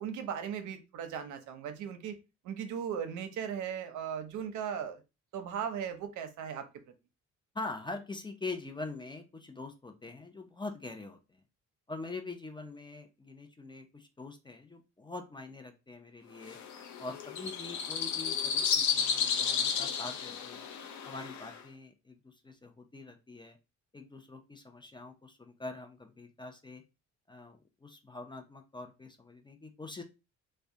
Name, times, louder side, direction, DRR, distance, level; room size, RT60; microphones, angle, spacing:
voice 1, 0.0-2.2 2.4-5.0 5.3-6.6, right 8 dB, 75° right, 7 dB, 0.6 m, -37 dB
voice 2, 7.5-11.4 11.9-16.6 17.0-20.7 21.1-23.6 23.9-26.8 27.3-30.0, left 3 dB, 15° left, 5 dB, 0.3 m, -44 dB
sound 1, 16.4-21.6, left 7 dB, 70° left, 0.5 m, -32 dB
2.3 x 2.1 x 2.7 m, 0.27 s
cardioid pair, 90°, 30 cm